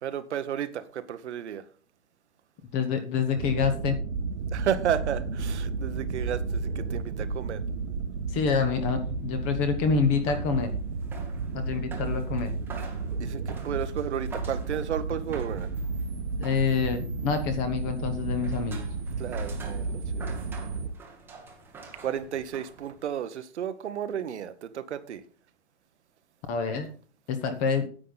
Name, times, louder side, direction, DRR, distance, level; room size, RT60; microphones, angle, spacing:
voice 1, 0.0-1.6 4.5-7.6 13.2-15.7 19.2-20.8 22.0-25.2, right 9 dB, 65° right, 1.1 m, -33 dB
voice 2, 2.7-4.0 8.3-10.7 11.5-12.5 16.4-18.9 26.5-26.9 27.3-27.9, left 6 dB, 20° left, 1.0 m, -27 dB
sound 1, 3.3-20.9, right 4 dB, 85° right, 1.5 m, -32 dB
sound 2, 8.3-23.2, right 4 dB, 5° right, 1.0 m, -48 dB
9.9 x 8.4 x 3.9 m
hypercardioid pair, 160°, 36 cm